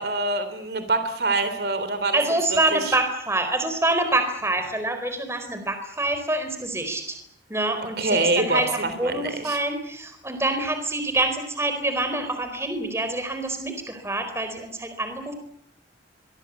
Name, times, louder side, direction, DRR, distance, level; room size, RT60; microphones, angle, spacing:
voice 1, 0.0-2.2 2.5-2.9 8.0-9.6, right 2 dB, 60° right, 10 dB, 3.6 m, -25 dB
voice 2, 2.1-7.2 7.5-15.3, right 2 dB, 15° right, 8 dB, 4.4 m, -26 dB
24.5 x 23.0 x 8.4 m, 0.67 s
head